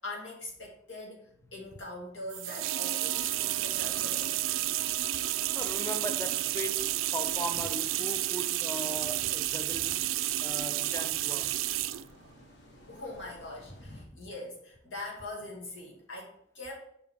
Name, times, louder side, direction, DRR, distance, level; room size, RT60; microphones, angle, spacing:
voice 1, 0.0-4.6 12.7-16.9, left 2 dB, 80° left, 2.1 m, -43 dB
sound 1, 2.3-12.1, right 15 dB, 85° right, 0.3 m, -31 dB
sound 2, 2.5-8.5, right 2 dB, 40° left, 2.5 m, -49 dB
sound 3, 3.0-14.1, equal, 60° left, 1.4 m, -55 dB
voice 2, 5.5-10.1 10.4-11.5 13.9-14.2, equal, 15° left, 0.4 m, -39 dB
7.0 x 5.5 x 3.5 m
head